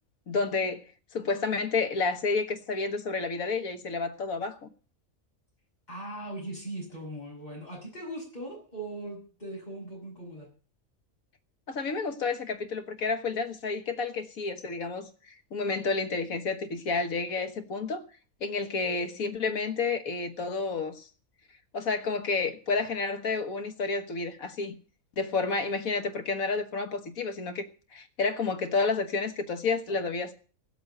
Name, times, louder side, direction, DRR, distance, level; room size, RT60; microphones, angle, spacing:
voice 1, 0.3-0.8 1.1-4.7 11.7-18.0 18.4-21.1 21.7-24.8 25.2-30.3, left 4 dB, 90° left, 1.8 m, -30 dB
voice 2, 5.9-10.5, right 1 dB, 30° left, 8.3 m, -39 dB
17.0 x 7.9 x 7.7 m
omnidirectional pair, 1.4 m